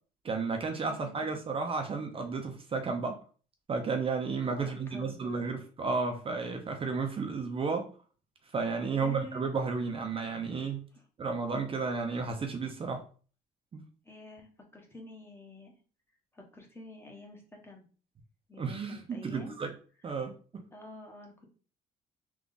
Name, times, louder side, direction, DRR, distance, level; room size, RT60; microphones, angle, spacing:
voice 1, 0.2-3.2 3.7-7.9 8.5-10.9 11.2-13.0 13.7-13.8 18.6-19.7 20.0-20.3, right 4 dB, 35° right, 4 dB, 0.6 m, -32 dB
voice 2, 0.9-1.4 4.5-5.5 8.9-9.5 10.9-11.1 14.0-15.8 16.3-17.8 18.5-19.6 20.7-21.5, left 1 dB, 15° left, 1 dB, 1.0 m, -49 dB
3.5 x 2.4 x 3.9 m, 0.39 s
cardioid pair, 110°, 17 cm